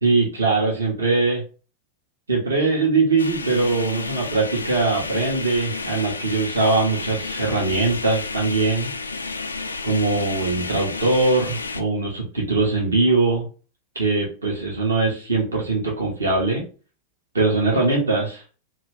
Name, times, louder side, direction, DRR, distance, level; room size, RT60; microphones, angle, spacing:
voice 1, 0.0-1.4 2.3-8.9 9.8-13.4 13.9-16.6 17.3-18.4, right 3 dB, 75° right, -2 dB, 1.0 m, -21 dB
sound 1, 3.2-11.8, left 4 dB, 75° left, 0.3 m, -31 dB
2.8 x 2.6 x 3.4 m, 0.36 s
figure-of-eight pair, 90°, 0 cm